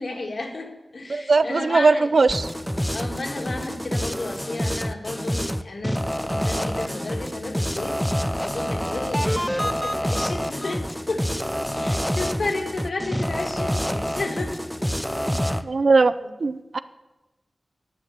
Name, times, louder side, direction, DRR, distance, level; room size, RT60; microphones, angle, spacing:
voice 1, 0.0-2.1 2.9-11.4 11.7-14.6 15.2-15.6 16.2-16.3, left 2 dB, 60° left, 2 dB, 1.7 m, -32 dB
voice 2, 1.1-2.4 15.6-16.1 16.4-16.8, right 3 dB, 60° right, 14 dB, 0.4 m, -19 dB
sound 1, 2.3-15.6, equal, 5° left, 0.4 m, -27 dB
10.5 x 6.0 x 8.4 m, 1.1 s
wide cardioid pair, 100°, 0 cm